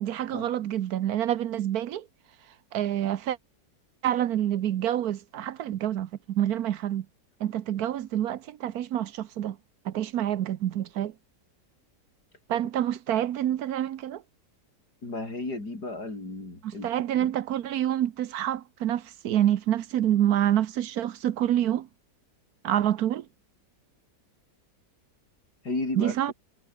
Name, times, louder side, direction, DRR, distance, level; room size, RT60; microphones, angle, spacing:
voice 1, 0.0-2.1 2.7-3.4 4.0-7.1 7.4-9.6 9.8-11.1 12.5-14.2 16.6-21.9 22.6-23.3 26.0-26.3, right 11 dB, 65° right, 1.2 m, -27 dB
voice 2, 15.0-16.9 17.2-17.3 25.6-26.2, left 2 dB, 65° left, 7.0 m, -33 dB
omnidirectional pair, 1.8 m